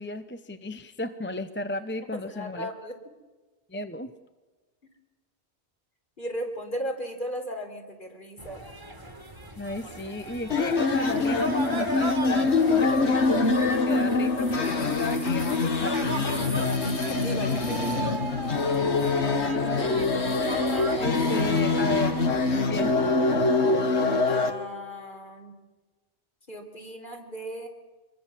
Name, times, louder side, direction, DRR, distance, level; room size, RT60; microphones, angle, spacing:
voice 1, 0.0-2.7 3.7-4.1 9.6-16.7 19.5-20.4 21.0-22.2 22.7-23.1, left 1 dB, 10° left, 9 dB, 0.8 m, -34 dB
voice 2, 2.2-2.9 6.2-8.6 16.8-18.1 24.2-25.5 26.5-27.7, equal, 45° left, 2 dB, 4.2 m, -36 dB
sound 1, 8.4-22.9, right 1 dB, 20° right, 1.9 m, -37 dB
sound 2, 10.5-24.5, left 3 dB, 70° left, 1.9 m, -24 dB
25.0 x 22.5 x 7.5 m, 1.2 s
omnidirectional pair, 1.2 m